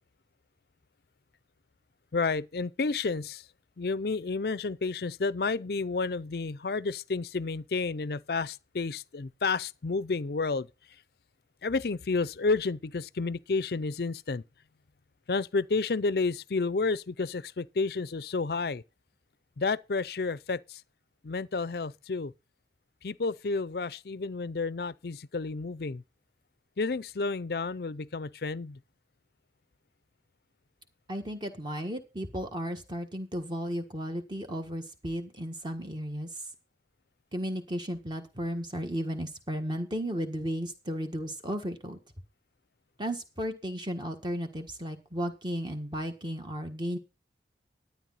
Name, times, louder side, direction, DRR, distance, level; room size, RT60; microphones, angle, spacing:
voice 1, 2.1-3.4 3.8-10.7 11.6-14.4 15.3-18.8 19.6-20.8 21.2-22.3 23.0-26.0 26.8-28.8, left 4 dB, 60° left, 0.5 m, -30 dB
voice 2, 31.1-36.4 37.3-42.0 43.0-47.0, equal, 25° right, 1.5 m, -34 dB
12.0 x 9.5 x 4.1 m
head